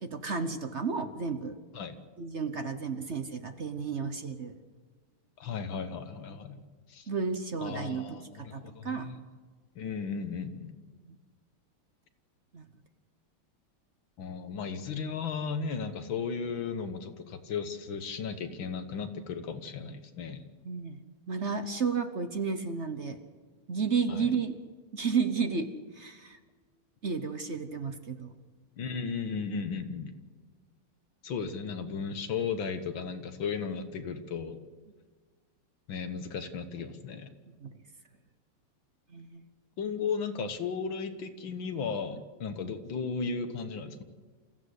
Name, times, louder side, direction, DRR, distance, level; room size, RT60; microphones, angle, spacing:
voice 1, 0.0-1.6 2.2-4.5 7.1-9.2 10.9-11.1 12.5-12.6 20.6-21.0 21.3-23.2 23.7-24.6 24.9-26.4 27.0-28.3 37.6-37.7 39.1-39.5, right 5 dB, 45° right, 8 dB, 1.0 m, -32 dB
voice 2, 5.4-6.6 6.9-7.1 7.6-9.2 9.8-10.8 14.2-20.4 24.1-24.3 28.8-30.1 31.2-34.6 35.9-37.3 39.8-44.0, left 5 dB, 65° left, 9 dB, 2.0 m, -35 dB
27.5 x 15.0 x 8.2 m, 1.5 s
omnidirectional pair, 2.4 m